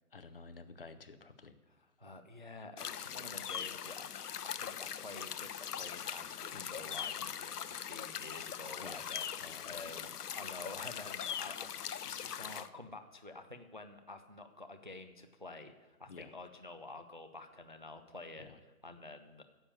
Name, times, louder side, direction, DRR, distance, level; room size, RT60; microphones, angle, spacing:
voice 1, 0.1-1.5 6.5-6.7 7.2-7.3 8.8-9.0 9.4-10.1 16.1-16.3 18.4-18.6, left 4 dB, 40° left, 10 dB, 0.6 m, -51 dB
voice 2, 1.7-4.1 4.4-18.5 18.8-19.4, left 2 dB, 35° right, 7 dB, 0.4 m, -49 dB
sound 1, 2.8-12.7, left 9 dB, 80° left, 0.7 m, -41 dB
9.8 x 7.2 x 8.3 m, 1.2 s
hypercardioid pair, 165°, 45 cm